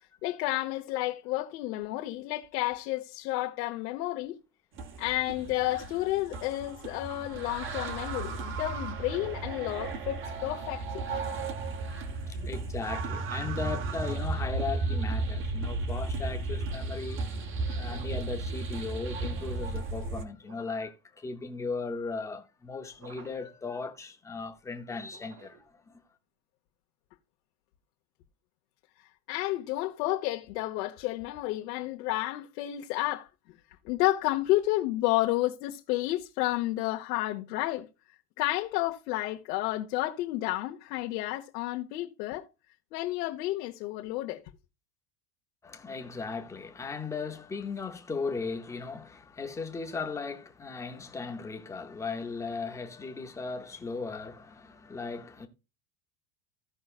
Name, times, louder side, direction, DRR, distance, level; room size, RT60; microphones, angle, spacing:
voice 1, 0.2-4.4 5.0-10.8 29.3-33.3 33.8-37.9 38.4-42.5 42.9-44.4, left 16 dB, 80° left, 1.2 m, -31 dB
sound 1, 4.7-20.2, right 3 dB, 25° right, 0.9 m, -34 dB
voice 2, 12.3-17.4 17.7-26.0 45.6-55.5, left 4 dB, 5° left, 0.5 m, -37 dB
sound 2, 17.8-18.4 20.4-21.0 22.9-23.6 25.0-25.8, right 5 dB, 80° right, 2.7 m, -54 dB
16.0 x 5.5 x 2.4 m
cardioid pair, 170°, 47 cm